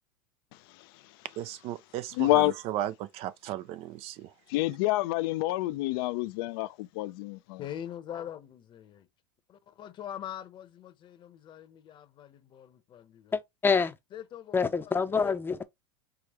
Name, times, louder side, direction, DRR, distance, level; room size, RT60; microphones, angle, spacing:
voice 1, 1.4-2.0 2.3-4.3, right 13 dB, 50° right, 0.6 m, -35 dB
voice 2, 2.2-2.5 4.5-7.6, left 18 dB, 70° left, 0.6 m, -28 dB
voice 3, 7.6-9.1 9.5-13.4 14.1-15.3, left 10 dB, 40° left, 1.0 m, -43 dB
voice 4, 13.3-14.0 14.5-15.6, left 5 dB, 15° left, 0.7 m, -26 dB
5.0 x 3.3 x 3.1 m
supercardioid pair, 110°, 13 cm